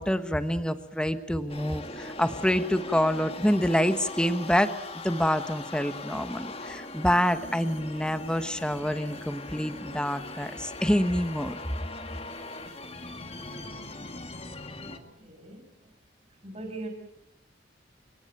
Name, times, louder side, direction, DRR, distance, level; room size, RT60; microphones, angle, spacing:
voice 1, 0.0-4.7 5.0-11.6, equal, 5° left, 10 dB, 1.1 m, -27 dB
sound 1, 1.5-15.0, left 2 dB, 30° left, 2.2 m, -40 dB
voice 2, 14.9-15.9 16.4-16.9, right 2 dB, 35° right, 4 dB, 6.5 m, -41 dB
29.0 x 18.0 x 9.1 m, 0.83 s
head